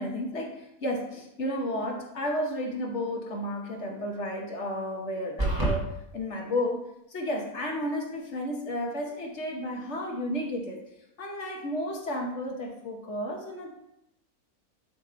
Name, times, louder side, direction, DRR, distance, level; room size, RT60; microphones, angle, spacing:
voice 1, 0.0-5.9 6.1-6.8 7.1-10.8 11.2-13.7, left 1 dB, 50° left, 0 dB, 1.5 m, -32 dB
sound 1, 5.4-5.8, right 2 dB, 15° right, 1.3 m, -25 dB
10.5 x 3.5 x 4.2 m, 0.82 s
omnidirectional pair, 1.6 m